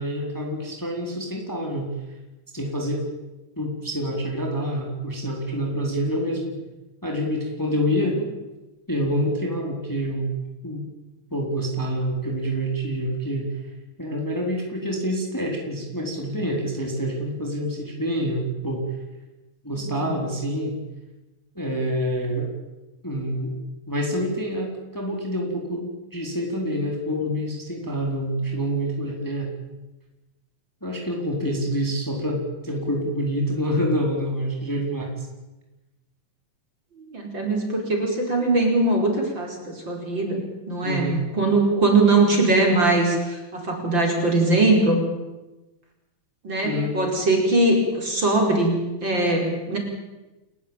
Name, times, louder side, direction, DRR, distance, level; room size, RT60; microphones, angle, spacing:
voice 1, 0.0-1.9 2.5-3.0 3.6-6.6 7.0-8.2 8.9-10.3 10.6-10.9 11.3-13.5 14.0-18.8 19.6-20.8 21.6-22.5 23.0-23.5 23.9-29.5 30.8-35.3 40.8-41.2 46.6-47.0, equal, 5° left, 0 dB, 4.0 m, -27 dB
voice 2, 19.7-20.1 37.1-45.1 46.4-49.8, right 2 dB, 40° right, 1 dB, 5.7 m, -21 dB
30.0 x 15.0 x 9.0 m, 1.1 s
omnidirectional pair, 3.3 m